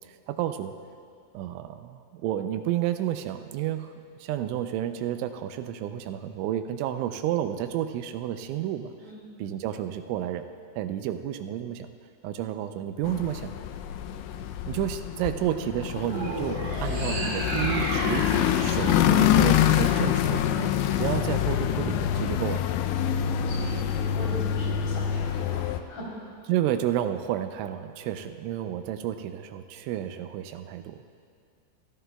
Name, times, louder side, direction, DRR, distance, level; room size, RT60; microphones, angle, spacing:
voice 1, 0.3-0.7 1.3-3.9 4.2-8.9 9.4-10.4 10.8-11.9 12.2-13.5 14.7-20.7 21.0-22.6 26.5-31.0, right 11 dB, 85° right, 8 dB, 3.0 m, -31 dB
sound 1, 13.0-25.8, left 10 dB, 85° left, 2.7 m, -26 dB
sound 2, 16.0-20.4, right 2 dB, 60° right, 1.2 m, -34 dB
voice 2, 23.2-26.1, equal, 60° left, -5 dB, 5.2 m, -39 dB
25.5 x 15.5 x 2.3 m, 2.3 s
omnidirectional pair, 5.5 m